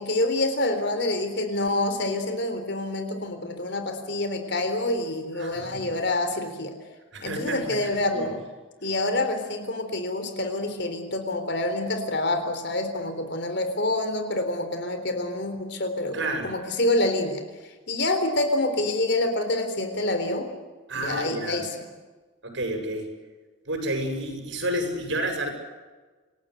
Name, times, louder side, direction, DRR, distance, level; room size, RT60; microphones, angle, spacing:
voice 1, 0.0-6.7 7.2-8.4 8.8-17.4 17.9-20.5 20.9-21.8, left 2 dB, 55° left, 7 dB, 3.7 m, -27 dB
voice 2, 5.4-5.9 7.1-8.3 16.1-16.5 20.9-21.7 22.4-23.1 23.7-25.5, right 1 dB, 65° right, 4 dB, 7.6 m, -30 dB
28.0 x 19.5 x 8.2 m, 1.3 s
head